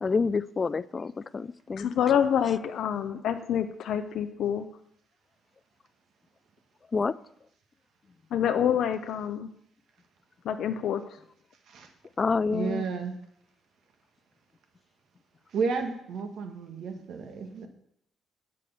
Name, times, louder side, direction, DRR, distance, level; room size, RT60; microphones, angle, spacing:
voice 1, 0.0-1.9 6.9-7.1 12.2-12.9, left 4 dB, 35° left, 17 dB, 0.4 m, -28 dB
voice 2, 1.8-4.7 8.3-9.5 10.4-11.0, left 9 dB, 75° left, 8 dB, 0.6 m, -27 dB
voice 3, 12.5-13.1 15.5-17.7, right 5 dB, 70° right, 5 dB, 1.6 m, -32 dB
8.4 x 6.4 x 7.0 m, 0.73 s
cardioid pair, 90°, 0 cm